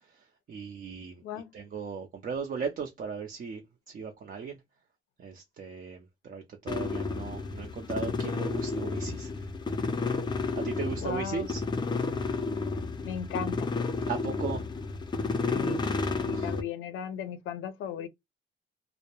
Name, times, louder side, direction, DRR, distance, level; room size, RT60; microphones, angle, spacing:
voice 1, 0.5-1.2 1.5-3.6 3.9-4.6 5.2-9.3 10.6-11.6 14.1-14.6 16.3-16.5, right 5 dB, 45° right, 0.5 m, -37 dB
voice 2, 1.2-1.5 11.0-11.5 13.0-13.7 15.5-15.9 16.2-18.1, left 8 dB, 80° left, 0.4 m, -36 dB
sound 1, 6.7-16.6, left 3 dB, 20° left, 0.4 m, -31 dB
2.1 x 2.0 x 2.8 m
cardioid pair, 90°, 20 cm